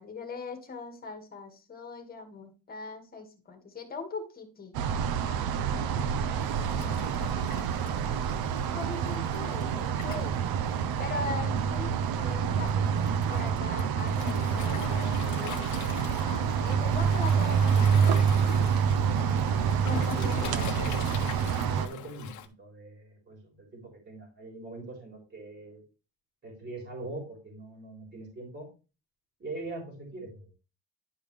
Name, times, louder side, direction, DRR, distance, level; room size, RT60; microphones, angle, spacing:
voice 1, 0.0-4.7 5.2-6.2 6.6-7.9 8.6-10.5 11.0-11.9 12.2-18.1 19.8-20.9, left 4 dB, 25° left, 4 dB, 1.8 m, -41 dB
sound 1, 4.7-21.9, right 7 dB, 85° right, 0.8 m, -27 dB
Waves surf, 6.4-22.5, left 9 dB, 55° left, 1.0 m, -43 dB
voice 2, 19.9-21.0 21.5-25.8 26.4-28.7 29.4-30.5, right 2 dB, 30° right, -1 dB, 3.6 m, -42 dB
11.0 x 5.2 x 3.2 m, 0.32 s
cardioid pair, 165°, 35 cm